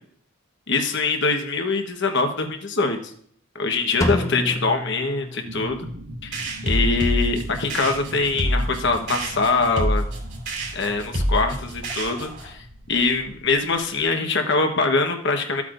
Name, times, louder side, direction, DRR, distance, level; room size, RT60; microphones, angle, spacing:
voice 1, 0.7-3.1 3.5-5.9 6.2-6.4 6.6-10.1 10.7-15.6, left 3 dB, 55° left, 4 dB, 1.2 m, -23 dB
Drum, 4.0-5.9, left 1 dB, 15° left, 0.7 m, -28 dB
sound 1, 5.4-14.0, equal, 90° right, 1.5 m, -40 dB
sound 2, 6.3-12.5, equal, 50° right, 3.1 m, -27 dB
14.5 x 8.5 x 2.6 m, 0.63 s
head